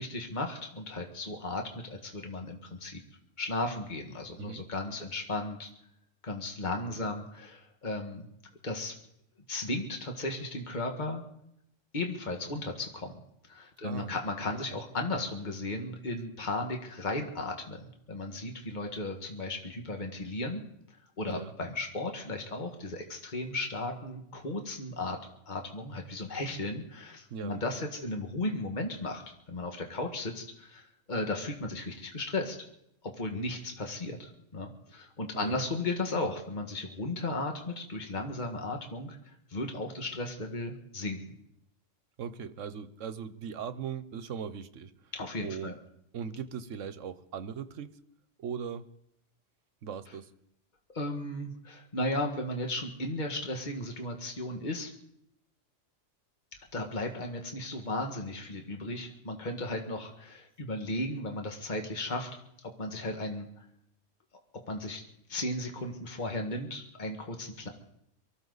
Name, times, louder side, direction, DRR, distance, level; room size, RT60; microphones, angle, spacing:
voice 1, 0.0-3.0 3.4-5.7 6.2-8.3 8.6-8.9 9.5-11.2 11.9-13.1 13.5-20.6 21.2-25.2 25.5-32.6 33.0-39.2 39.5-41.2 45.1-45.7 50.9-54.9 56.7-62.3 62.6-63.6 64.7-65.0 65.3-67.7, left 2 dB, 40° left, 3 dB, 1.9 m, -35 dB
voice 2, 13.8-14.1 14.7-14.8 21.3-21.5 27.3-27.6 35.3-35.6 42.2-45.1 45.4-45.8 46.1-48.0 48.4-48.9 49.8-50.3, right 7 dB, 80° right, 13 dB, 1.2 m, -39 dB
23.5 x 14.5 x 4.1 m, 0.77 s
omnidirectional pair, 1.3 m